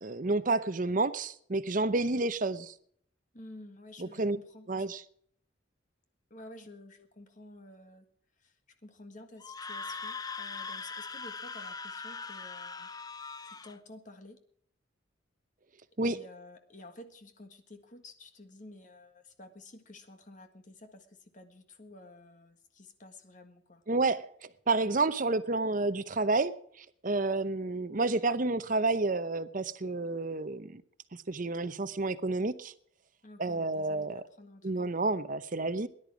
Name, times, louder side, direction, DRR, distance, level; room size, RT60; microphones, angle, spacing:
voice 1, 0.0-2.7 4.0-4.4 4.7-5.0 16.0-16.2 23.9-24.3 24.7-26.6 27.0-30.8 31.3-32.7 33.4-34.2 34.6-35.9, right 3 dB, 40° right, 0.8 m, -30 dB
voice 2, 3.3-4.9 6.3-8.0 8.4-8.5 8.8-12.9 13.4-14.4 16.0-23.8 33.2-34.9, left 2 dB, 40° left, 1.7 m, -51 dB
Screaming, 9.4-13.8, left 4 dB, 20° left, 0.6 m, -41 dB
19.0 x 11.0 x 4.9 m
head